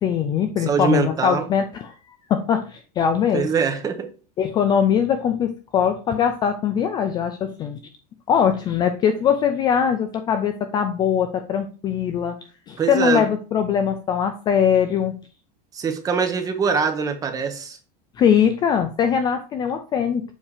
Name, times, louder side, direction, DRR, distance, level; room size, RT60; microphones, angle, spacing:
voice 1, 0.0-1.9 2.3-3.5 4.4-7.8 8.3-12.4 12.7-15.1 18.2-20.2, left 8 dB, 20° left, 8 dB, 0.3 m, -21 dB
voice 2, 0.6-1.5 3.3-4.1 12.8-13.3 15.7-17.8, right 5 dB, 15° right, 7 dB, 0.7 m, -23 dB
7.2 x 2.8 x 4.8 m, 0.36 s
supercardioid pair, 165°, 21 cm